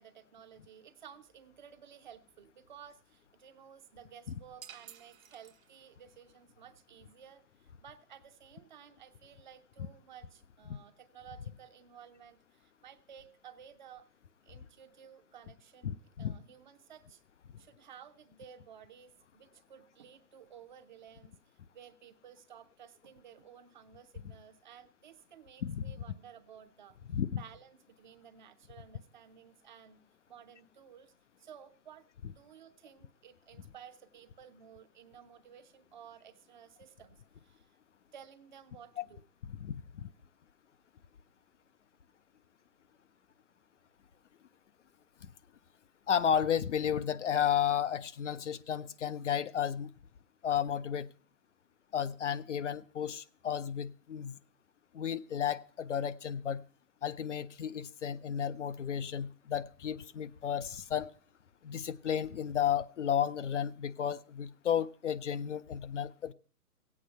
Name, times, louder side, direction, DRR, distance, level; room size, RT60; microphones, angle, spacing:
voice 1, 0.0-14.1 14.4-17.2 17.6-21.3 21.7-27.0 27.3-30.0 30.3-31.1 31.4-32.0 32.3-37.7 38.1-39.2, right 8 dB, 30° right, 0.7 m, -55 dB
sound 1, 4.6-6.1, right 9 dB, 60° right, 0.9 m, -53 dB
voice 2, 15.8-16.4 25.6-26.0 27.1-27.4 39.0-39.1 39.5-39.7 40.0-40.1 46.1-49.9 50.4-51.1 51.9-54.4 54.9-56.6 57.0-61.1 61.6-66.3, left 9 dB, 55° left, 0.6 m, -33 dB
15.5 x 8.7 x 5.4 m
figure-of-eight pair, 135°, 45 cm